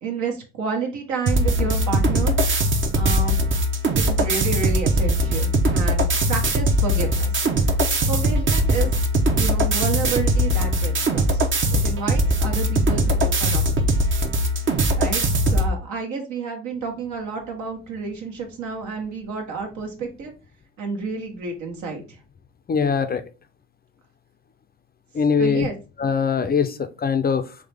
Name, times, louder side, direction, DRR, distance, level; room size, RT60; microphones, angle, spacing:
voice 1, 0.0-2.4 2.9-3.4 3.9-7.3 8.1-9.0 9.4-11.4 11.7-13.9 15.0-15.2 15.5-20.3 20.8-22.2 25.4-25.7, right 4 dB, 65° right, 1.4 m, -30 dB
sound 1, 1.3-15.7, right 1 dB, 35° right, 0.9 m, -20 dB
voice 2, 22.7-23.2 25.1-25.7 26.0-27.6, left 6 dB, 30° left, 0.5 m, -22 dB
3.7 x 3.2 x 3.5 m
hypercardioid pair, 60°, 32 cm